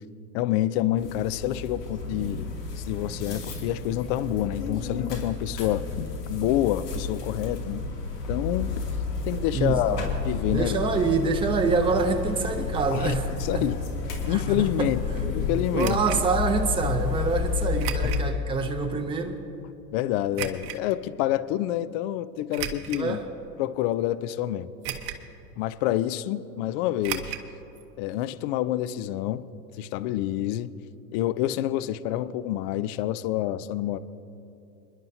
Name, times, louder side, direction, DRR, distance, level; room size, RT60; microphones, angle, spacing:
voice 1, 0.3-7.8 8.3-8.7 9.3-10.8 12.9-13.1 13.4-13.8 14.3-15.0 15.3-16.0 19.9-23.2 23.6-24.7 25.6-27.3 28.0-29.4 29.8-30.7 31.1-34.0, left 13 dB, 40° left, 15 dB, 0.5 m, -27 dB
sound 1, 1.0-18.3, left 4 dB, 80° left, 2.7 m, -31 dB
voice 2, 9.5-10.1 10.5-13.6 14.3-14.9 15.7-19.4 22.9-23.3, right 4 dB, 10° right, 4 dB, 0.8 m, -26 dB
sound 2, 15.8-16.2 17.8-18.3 18.8-18.9 20.3-20.8 22.5-23.1 23.7-23.8 24.8-25.3 25.6-25.7 27.0-27.5 27.8-27.9 28.1-28.2, right 10 dB, 40° right, 1.1 m, -34 dB
29.5 x 11.0 x 2.7 m, 2.8 s
hypercardioid pair, 95°, 48 cm